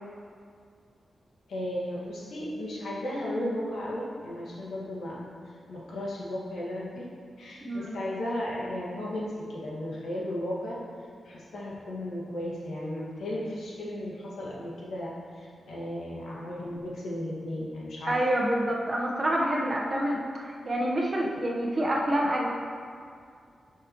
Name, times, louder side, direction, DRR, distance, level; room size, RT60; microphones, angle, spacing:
voice 1, 1.5-5.2 5.7-7.1 7.4-10.8 11.2-18.2, left 1 dB, 90° left, -6 dB, 1.9 m, -35 dB
voice 2, 7.6-8.0 18.1-22.5, right 1 dB, 35° right, -2 dB, 1.2 m, -27 dB
9.7 x 5.8 x 3.1 m, 2.3 s
wide cardioid pair, 125°, 0 cm